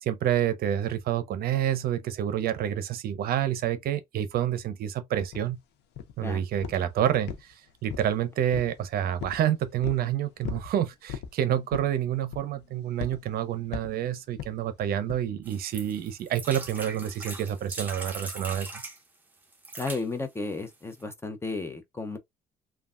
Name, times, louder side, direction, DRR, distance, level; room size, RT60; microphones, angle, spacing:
voice 1, 0.0-5.6 6.2-7.5 7.8-18.8, right 10 dB, 65° right, 0.6 m, -28 dB
sound 1, 5.3-5.5 6.0-6.3 6.6-6.9 7.3-8.2 8.5-8.8 9.2-9.4 9.8-10.1 10.4-10.7 11.1-11.3 11.7-12.0 12.3-12.6 13.0-13.2 13.7-14.0 14.4-14.6 15.1-15.3, left 8 dB, 80° left, 0.6 m, -37 dB
sound 2, 15.5-19.0 19.5-20.0 20.7-20.8 21.0-21.1, right 2 dB, 10° right, 0.9 m, -40 dB
voice 2, 19.8-22.2, left 3 dB, 15° left, 0.6 m, -33 dB
3.2 x 2.3 x 2.4 m
cardioid pair, 110°, 17 cm